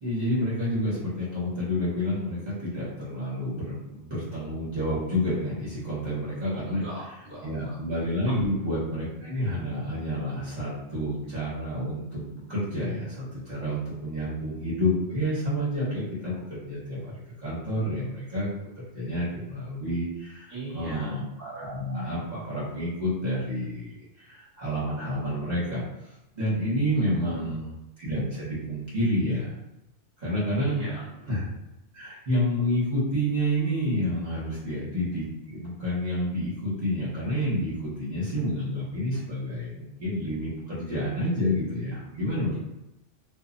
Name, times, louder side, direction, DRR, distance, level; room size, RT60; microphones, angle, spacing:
voice 1, 0.0-6.8 7.4-17.1 17.4-18.5 18.8-25.8 26.3-29.5 30.2-30.9 31.3-31.4 31.9-42.6, equal, 40° right, -9 dB, 0.9 m, -29 dB
voice 2, 6.4-7.8 8.3-8.4 20.5-21.1 26.9-27.5 30.6-31.0 42.3-42.6, equal, 10° right, -7 dB, 0.8 m, -38 dB
2.2 x 2.0 x 3.7 m, 0.89 s
omnidirectional pair, 1.2 m